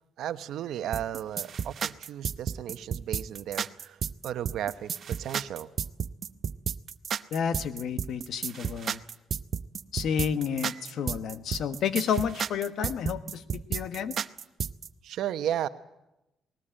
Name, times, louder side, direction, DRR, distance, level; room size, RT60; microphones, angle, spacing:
voice 1, 0.2-4.0 4.2-5.7 10.7-10.8 15.0-15.7, right 11 dB, 80° right, 10 dB, 1.0 m, -34 dB
sound 1, 0.9-14.9, right 7 dB, 55° right, 0.7 m, -32 dB
voice 2, 7.3-9.0 9.9-14.2, left 7 dB, 70° left, 10 dB, 1.3 m, -30 dB
20.0 x 19.0 x 8.9 m, 0.94 s
cardioid pair, 90°, 0 cm